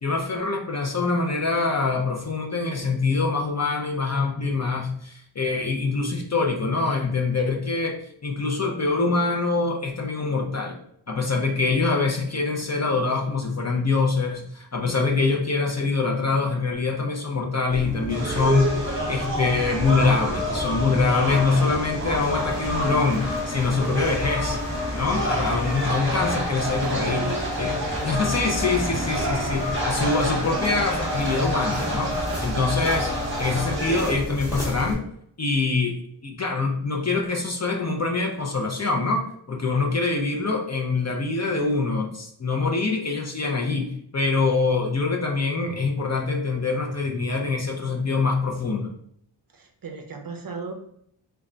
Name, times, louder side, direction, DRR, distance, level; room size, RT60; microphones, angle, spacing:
voice 1, 0.0-10.8 11.1-24.6 24.9-27.2 27.6-27.7 28.0-32.1 32.4-33.1 33.4-35.0 35.4-35.9 36.2-48.9, left 3 dB, 35° left, 1 dB, 0.4 m, -24 dB
sound 1, 17.7-34.9, left 1 dB, 5° left, 1.0 m, -32 dB
sound 2, 18.1-34.1, equal, 25° right, 1.0 m, -29 dB
Cheering / Applause, 22.2-32.2, left 2 dB, 70° left, 1.3 m, -40 dB
voice 2, 26.8-28.1 49.5-50.7, right 4 dB, 45° right, 4 dB, 0.5 m, -35 dB
3.4 x 2.1 x 3.7 m, 0.69 s
wide cardioid pair, 105°, 49 cm